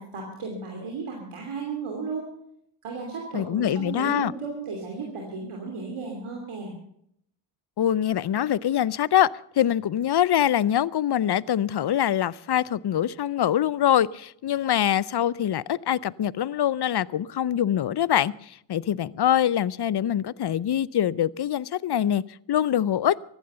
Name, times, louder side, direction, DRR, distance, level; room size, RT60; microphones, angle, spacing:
voice 1, 0.0-2.3 2.8-6.7, right 4 dB, 85° right, 3.1 m, -34 dB
voice 2, 3.3-4.3 7.8-9.3 9.6-22.2 22.5-23.2, left 10 dB, 55° left, 0.6 m, -24 dB
15.0 x 11.5 x 6.8 m
cardioid pair, 55°, 49 cm